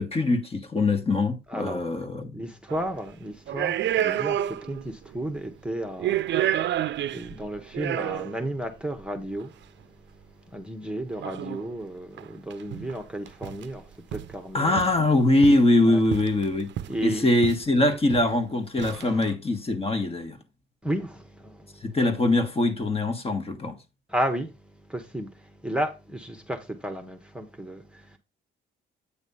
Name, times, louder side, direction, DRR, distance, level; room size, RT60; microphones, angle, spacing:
voice 1, 0.0-2.3 14.5-16.7 17.0-20.4 21.8-23.8, left 2 dB, 30° left, 1.3 m, -23 dB
voice 2, 1.5-1.8 2.3-14.8 15.9-16.0 16.9-17.3 18.9-19.3 20.8-22.0 24.1-28.2, right 1 dB, 5° right, 1.0 m, -34 dB
sound 1, 2.7-2.9 3.5-4.9 5.1-5.2 5.8-8.5 9.4-9.5 11.2-11.7 12.2-12.3 12.5-13.0 13.3-13.7 14.1-14.3 14.8-15.7 16.1-17.0 17.4-17.6 17.9-18.3 18.8-19.2, right 11 dB, 65° right, 0.6 m, -29 dB
8.5 x 3.1 x 5.4 m
cardioid pair, 90°, 20 cm